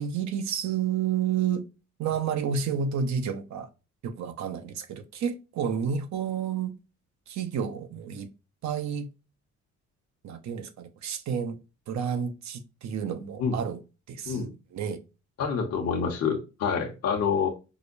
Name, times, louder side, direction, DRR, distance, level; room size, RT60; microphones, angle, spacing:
voice 1, 0.0-1.6 2.0-3.7 4.0-6.7 7.3-8.3 8.6-9.1 10.2-11.6 11.9-13.8 14.1-15.0, right 7 dB, 65° right, 0.7 m, -30 dB
voice 2, 15.4-17.5, left 6 dB, 55° left, 0.9 m, -27 dB
4.8 x 2.2 x 2.5 m
cardioid pair, 90°, 30 cm